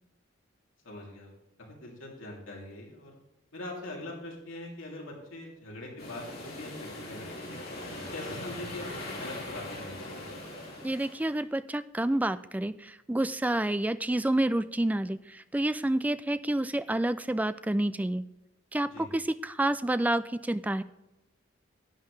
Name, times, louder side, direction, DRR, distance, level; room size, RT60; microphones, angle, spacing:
voice 1, 0.8-1.3 1.6-3.1 3.5-7.4 8.1-10.3 18.9-19.1, left 1 dB, 75° left, -2 dB, 3.1 m, -42 dB
sound 1, 6.0-11.4, left 1 dB, 50° left, 3.2 m, -40 dB
voice 2, 10.8-18.2 18.7-20.8, right 1 dB, 10° right, 13 dB, 0.3 m, -29 dB
11.5 x 9.1 x 3.3 m, 0.96 s
head